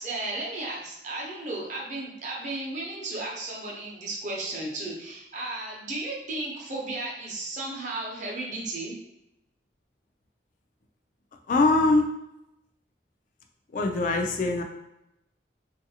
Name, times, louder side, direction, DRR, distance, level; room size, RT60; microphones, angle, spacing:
voice 1, 0.0-8.9, right 2 dB, 40° right, -3 dB, 0.7 m, -34 dB
voice 2, 11.5-12.0 13.7-14.6, left 2 dB, 45° left, 4 dB, 0.3 m, -22 dB
3.1 x 2.5 x 2.7 m, 0.87 s
head